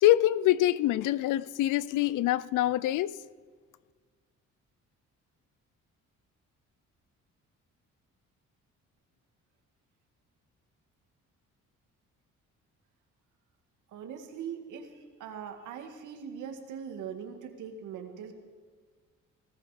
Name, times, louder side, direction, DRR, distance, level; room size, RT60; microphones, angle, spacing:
voice 1, 0.0-3.2, left 14 dB, 85° left, 0.5 m, -25 dB
voice 2, 13.9-14.9 15.2-18.3, right 7 dB, 85° right, 1.9 m, -41 dB
19.0 x 14.0 x 5.0 m
cardioid pair, 90°, 30 cm